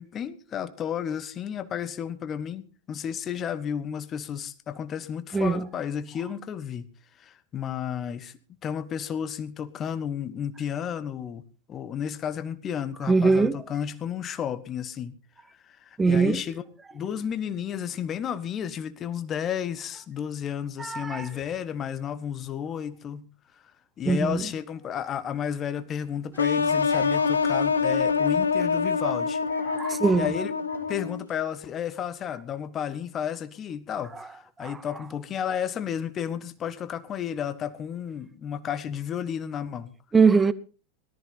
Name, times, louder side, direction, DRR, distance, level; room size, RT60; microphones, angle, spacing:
voice 1, 0.0-6.9 7.2-8.3 8.6-11.4 11.7-15.1 15.6-16.6 16.9-23.3 24.0-29.4 30.2-30.5 30.9-39.9, left 8 dB, 25° left, 1.2 m, -32 dB
voice 2, 13.1-13.6 16.0-16.4 20.8-21.3 24.0-24.4 29.7-30.3 34.6-34.8 40.1-40.5, right 4 dB, 15° right, 0.8 m, -21 dB
sound 1, 26.4-31.2, left 5 dB, 75° left, 1.1 m, -25 dB
18.0 x 14.0 x 4.1 m
figure-of-eight pair, 90°, 0 cm